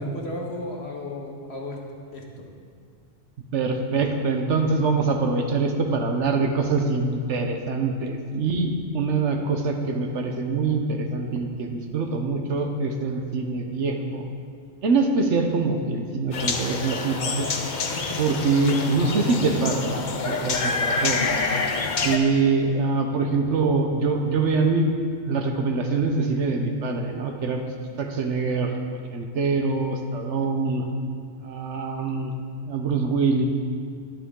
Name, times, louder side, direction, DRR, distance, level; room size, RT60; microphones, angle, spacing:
voice 1, 0.0-1.8 2.1-2.5, left 1 dB, 60° left, 0 dB, 1.6 m, -34 dB
voice 2, 3.5-14.2 14.8-17.5 18.2-21.2 22.0-24.9 25.3-27.6 28.0-28.7 29.1-30.9 31.4-32.3 32.7-33.4, right 4 dB, 70° right, 4 dB, 1.2 m, -24 dB
sound 1, 16.3-22.2, left 4 dB, 45° left, 0.8 m, -27 dB
11.0 x 10.5 x 3.7 m, 2.1 s
omnidirectional pair, 1.3 m